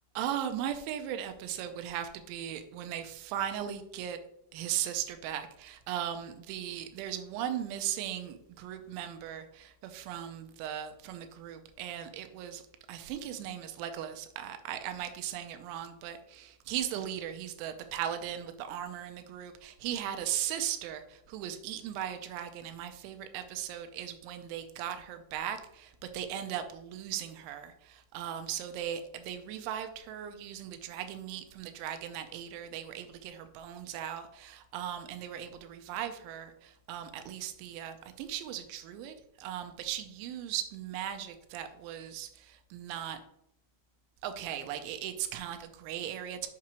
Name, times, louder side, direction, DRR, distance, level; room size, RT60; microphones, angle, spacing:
voice 1, 0.2-4.2 4.5-12.6 12.9-43.2 44.2-46.5, right 10 dB, 80° right, 7 dB, 2.8 m, -38 dB
7.4 x 5.7 x 2.9 m, 0.76 s
omnidirectional pair, 5.8 m